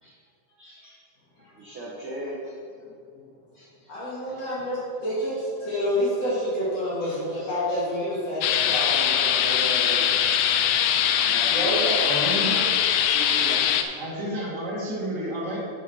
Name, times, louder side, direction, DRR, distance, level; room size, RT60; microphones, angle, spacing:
voice 1, 0.5-1.0 1.4-2.5 3.5-4.3 5.3-5.4 6.0-6.1 7.0-7.8 8.1-8.2 8.7-10.1 10.6-10.7 11.2-12.4 12.9-13.8 14.2-14.3, right 1 dB, 80° right, -5 dB, 1.1 m, -37 dB
voice 2, 2.8-3.2 3.9-9.2 11.5-12.0 13.5-13.6, equal, 45° left, -9 dB, 3.3 m, -28 dB
sound 1, 8.4-13.8, left 9 dB, 85° left, 2.4 m, -22 dB
voice 3, 12.1-12.6 14.0-15.6, right 1 dB, 30° right, -5 dB, 1.7 m, -31 dB
10.0 x 6.3 x 4.6 m, 2.5 s
omnidirectional pair, 4.2 m